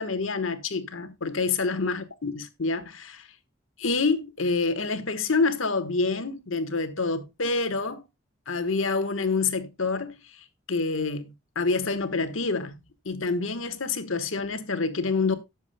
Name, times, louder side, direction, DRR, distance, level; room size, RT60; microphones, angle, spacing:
voice 1, 0.0-3.2 3.8-8.0 8.5-10.2 10.7-12.8 13.0-15.3, left 4 dB, 80° left, 1.3 m, -27 dB
18.0 x 7.2 x 2.2 m
head